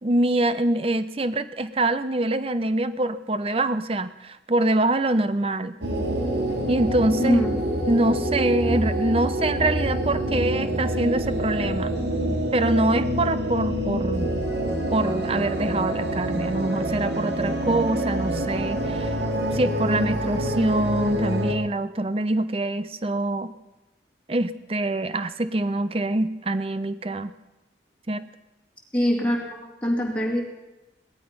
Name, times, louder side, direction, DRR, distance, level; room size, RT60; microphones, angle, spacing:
voice 1, 0.0-5.7 6.7-7.4 7.9-12.0 12.5-14.3 14.9-19.1 19.5-23.5 24.3-27.3 28.1-28.2, right 2 dB, 30° right, 13 dB, 0.7 m, -24 dB
sound 1, 5.8-21.5, right 1 dB, 75° right, 2.1 m, -26 dB
voice 2, 7.2-7.6 28.9-30.4, equal, 5° left, -2 dB, 3.0 m, -23 dB
18.0 x 13.0 x 5.4 m, 1.0 s
head